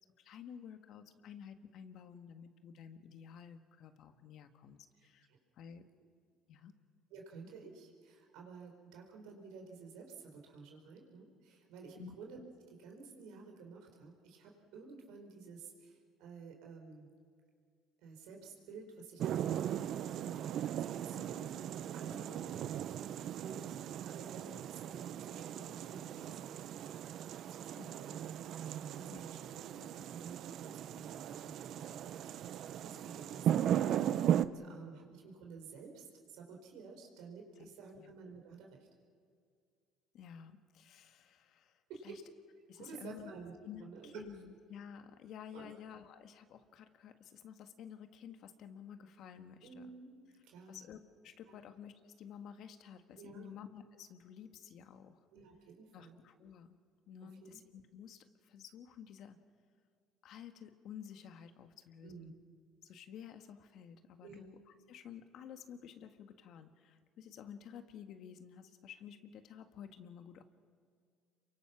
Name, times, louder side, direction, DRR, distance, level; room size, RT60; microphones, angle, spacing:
voice 1, 0.2-5.3 5.5-5.9 6.5-6.7 12.0-12.1 20.2-20.3 21.1-21.2 27.8-27.9 29.1-29.2 29.8-29.9 37.6-37.7 38.0-38.1 40.1-42.2 42.7-43.3 43.6-49.9 50.7-55.2 55.9-56.8 57.1-59.4 60.2-62.4 62.8-64.6 64.9-70.4, left 8 dB, 65° left, 8 dB, 1.6 m, -52 dB
voice 2, 5.0-5.4 7.1-12.4 12.7-17.1 18.0-21.6 21.9-22.7 23.4-23.7 24.1-26.9 27.4-38.7 41.9-42.2 42.8-43.6 43.8-44.2 45.5-45.7 49.6-50.1 50.4-50.8 51.5-51.6 53.2-53.6 55.3-56.1 57.4-57.6 62.0-62.3 64.2-64.5, right 5 dB, 80° right, 1 dB, 4.9 m, -52 dB
sound 1, 19.2-34.4, right 10 dB, 60° right, 0.7 m, -37 dB
28.0 x 23.5 x 6.0 m, 2.2 s
supercardioid pair, 90°, 0 cm